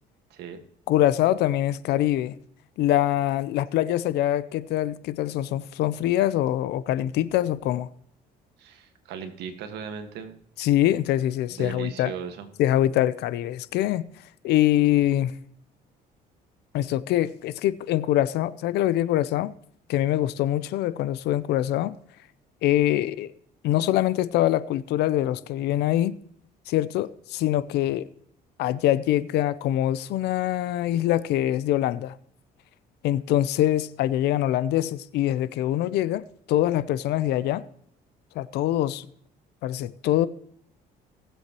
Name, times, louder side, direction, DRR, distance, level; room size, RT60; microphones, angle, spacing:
voice 1, 0.9-2.4 2.8-7.9 10.6-12.1 12.6-14.1 14.4-15.3 16.7-19.5 19.9-22.0 22.6-23.3 23.6-26.2 26.7-28.0 28.6-32.2 33.0-37.7 38.4-39.1 39.6-40.3, left 13 dB, 80° left, 0.6 m, -24 dB
voice 2, 8.6-10.4 11.6-12.5, right 7 dB, 85° right, 1.6 m, -37 dB
19.0 x 7.8 x 3.0 m
cardioid pair, 110°, 17 cm